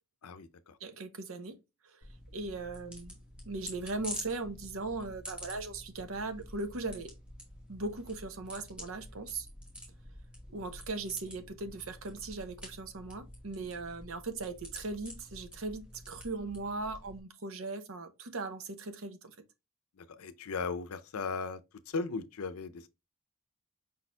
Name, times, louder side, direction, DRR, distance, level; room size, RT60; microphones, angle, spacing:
voice 1, 0.2-0.7 20.2-21.6 21.9-22.9, left 4 dB, 85° left, 0.5 m, -37 dB
voice 2, 0.8-1.6 1.8-2.0 2.3-3.1 3.5-7.1 7.7-9.5 10.5-19.4, right 3 dB, 70° right, 0.8 m, -39 dB
sound 1, 2.0-17.2, equal, 5° right, 1.1 m, -48 dB
5.1 x 4.2 x 2.2 m
head